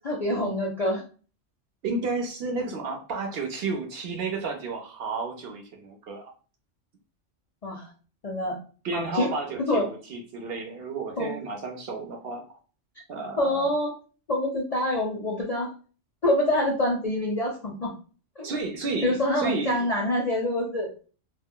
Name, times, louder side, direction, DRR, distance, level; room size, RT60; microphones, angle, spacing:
voice 1, 0.0-1.0 7.6-7.9 8.2-8.6 8.9-9.3 9.7-9.9 11.2-11.4 13.4-13.9 14.3-15.7 16.2-17.9 18.4-18.5 19.0-20.9, left 1 dB, 50° left, -1 dB, 0.5 m, -26 dB
voice 2, 1.8-6.3 8.8-12.4 13.1-13.7 18.4-19.9, right 3 dB, 60° right, 3 dB, 0.7 m, -32 dB
2.2 x 2.1 x 3.6 m, 0.37 s
omnidirectional pair, 1.3 m